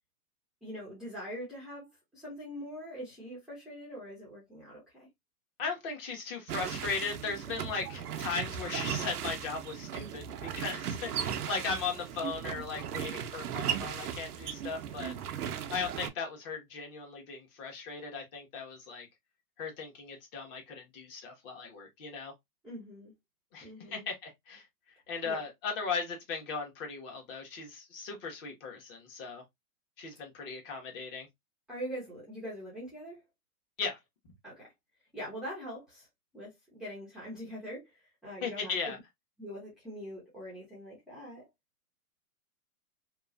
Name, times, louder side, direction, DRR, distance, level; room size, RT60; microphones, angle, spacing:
voice 1, 0.6-5.1 22.6-23.1 23.6-24.1 25.2-25.4 30.1-30.2 31.7-33.2 34.4-34.7 35.1-36.1 36.3-39.0 39.4-41.5, equal, ahead, 0.6 m, -43 dB
voice 2, 5.6-15.1 15.7-19.1 19.6-22.3 23.5-24.6 25.1-29.4 30.0-31.3 33.8-34.0 38.4-39.0, left 5 dB, 35° left, 1.2 m, -37 dB
sound 1, 6.5-16.1, right 9 dB, 75° right, 0.7 m, -37 dB
2.9 x 2.4 x 2.4 m
hypercardioid pair, 140°, 46 cm